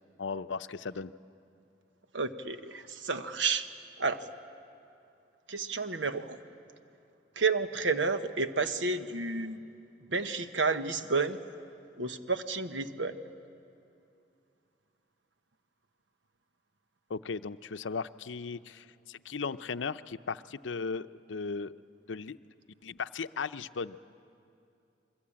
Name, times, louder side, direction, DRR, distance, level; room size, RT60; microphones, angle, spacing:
voice 1, 0.2-1.1 17.1-21.7 22.1-22.4 22.8-24.0, left 5 dB, 85° left, 12 dB, 0.6 m, -37 dB
voice 2, 2.1-3.7 4.0-4.3 5.5-6.4 7.4-9.6 10.1-11.4 12.0-13.2, right 4 dB, 80° right, 9 dB, 1.2 m, -31 dB
28.5 x 22.5 x 8.7 m, 2.6 s
head